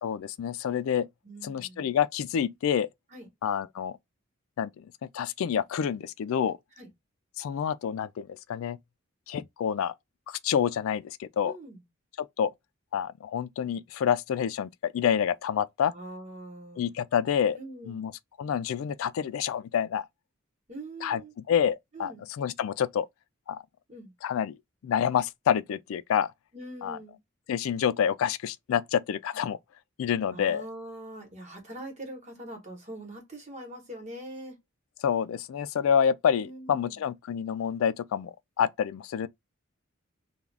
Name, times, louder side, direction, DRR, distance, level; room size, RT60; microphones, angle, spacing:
voice 1, 0.0-1.1 1.4-2.9 3.4-4.0 4.6-4.8 5.1-6.6 7.4-8.8 9.3-9.9 10.3-11.5 12.4-12.5 12.9-15.9 16.8-17.6 17.8-18.1 18.4-20.1 21.0-21.2 21.5-23.1 23.5-23.6 24.2-24.6 24.8-26.3 26.8-27.0 27.5-29.6 30.0-30.6 35.0-39.3, left 8 dB, 90° left, 0.3 m, -28 dB
voice 2, 1.2-1.9 3.1-3.3 6.8-6.9 11.4-11.8 15.9-16.9 17.6-18.0 20.7-21.3 21.9-22.2 23.9-24.1 26.5-27.2 30.3-34.6 36.3-37.0, right 1 dB, 35° right, 1.1 m, -43 dB
2.4 x 2.3 x 3.2 m
head